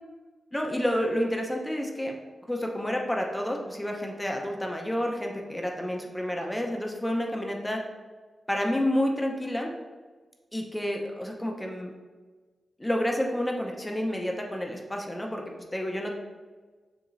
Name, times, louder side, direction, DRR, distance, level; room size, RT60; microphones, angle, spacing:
voice 1, 0.5-2.1 2.5-7.8 8.5-9.7 10.5-11.9 12.8-15.4 15.7-16.1, left 1 dB, 10° left, 1 dB, 0.6 m, -29 dB
6.9 x 2.9 x 2.5 m, 1.4 s
wide cardioid pair, 110°, 0 cm